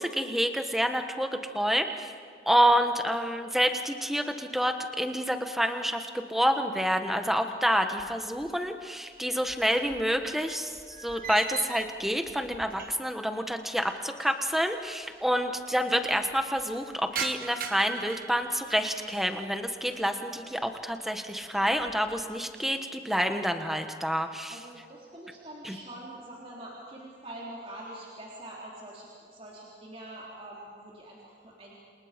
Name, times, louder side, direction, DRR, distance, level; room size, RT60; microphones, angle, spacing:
voice 1, 0.0-2.1 2.5-24.6 25.6-25.7, equal, ahead, 6 dB, 1.3 m, -28 dB
sound 1, 8.0-8.9 9.1-13.2 13.5-13.6 14.5-14.6 14.8-14.9 15.1-15.6 16.0-19.2 19.7-20.2 20.6-21.0 21.4-22.3, right 7 dB, 55° right, 1.5 m, -42 dB
voice 2, 24.5-31.7, right 1 dB, 35° right, -5 dB, 3.7 m, -45 dB
29.0 x 28.5 x 5.2 m, 2.2 s
head